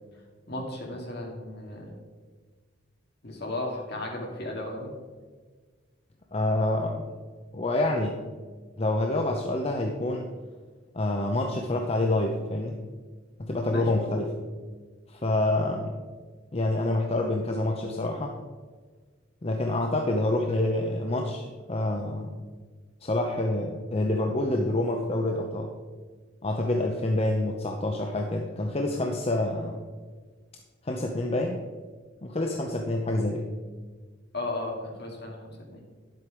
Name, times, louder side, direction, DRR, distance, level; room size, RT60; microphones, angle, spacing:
voice 1, 0.5-1.9 3.2-4.9 13.7-14.1 34.3-35.4 35.7-35.8, left 2 dB, 55° left, 0 dB, 2.2 m, -35 dB
voice 2, 6.3-7.1 7.5-8.2 8.8-10.3 10.9-12.8 13.4-14.3 15.1-16.0 16.5-18.3 19.4-22.3 23.0-25.7 26.4-29.8 30.8-31.6 32.2-33.5, left 1 dB, 30° left, 2 dB, 0.7 m, -27 dB
10.5 x 7.7 x 4.8 m, 1.5 s
head